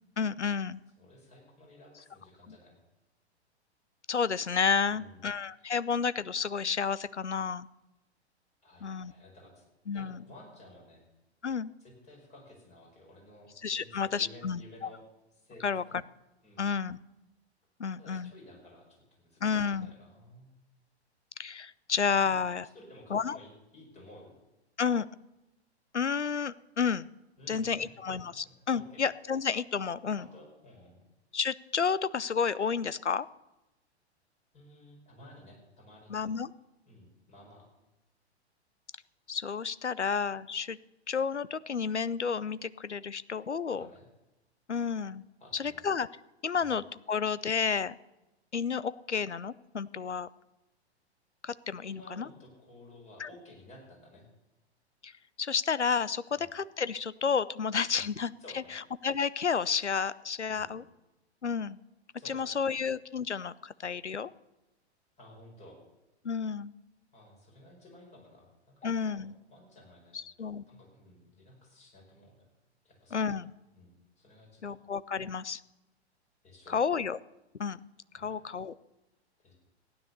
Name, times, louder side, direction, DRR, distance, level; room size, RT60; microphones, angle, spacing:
voice 1, 0.2-0.8 2.5-2.6 4.1-7.7 8.8-9.1 9.9-10.2 11.4-11.7 13.6-14.6 15.6-15.8 16.6-17.0 17.8-18.3 19.4-19.9 21.4-22.7 23.1-23.4 24.8-25.1 25.9-27.1 27.5-30.3 31.3-33.3 36.1-36.5 39.3-40.8 41.1-43.9 44.7-45.3 45.5-46.1 46.4-48.0 48.5-50.3 51.4-52.3 53.2-53.3 55.0-55.1 55.4-58.3 58.7-60.8 61.4-61.8 62.3-64.3 66.2-66.7 68.8-69.3 70.1-70.6 73.1-73.5 74.6-75.6 76.7-77.2 77.6-77.8 78.1-78.7, left 6 dB, 85° left, 18 dB, 0.6 m, -31 dB
voice 2, 1.0-2.8 4.9-5.3 8.6-9.6 9.9-11.1 11.8-15.0 15.4-15.9 16.4-16.7 18.0-20.5 22.2-22.4 22.7-24.3 27.4-28.2 28.7-29.0 30.1-31.0 34.5-36.2 36.8-37.7 43.7-44.0 45.4-45.9 46.5-46.8 51.8-54.2 56.3-56.5 57.9-58.0 58.4-58.7 60.4-60.8 62.2-62.8 65.2-65.8 67.1-72.4 72.8-73.4 73.7-74.8 76.4-76.8 78.1-78.4 79.4-79.5, left 1 dB, 20° left, 0 dB, 5.0 m, -54 dB
15.5 x 9.8 x 6.8 m, 0.99 s
figure-of-eight pair, 105°, 34 cm